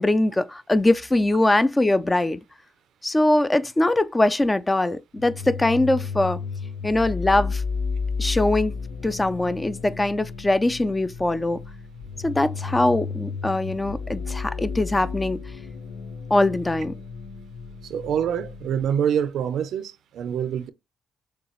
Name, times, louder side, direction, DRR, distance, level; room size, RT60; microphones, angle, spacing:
voice 1, 0.0-2.4 3.0-6.4 6.8-7.6 8.2-8.7 9.0-11.6 12.2-15.4 16.3-16.9, left 2 dB, 15° left, 0.4 m, -22 dB
sound 1, 5.1-18.8, left 5 dB, 90° left, 0.8 m, -33 dB
voice 2, 17.9-20.7, right 8 dB, 75° right, 0.5 m, -25 dB
6.6 x 2.3 x 3.0 m
cardioid pair, 90°, 0 cm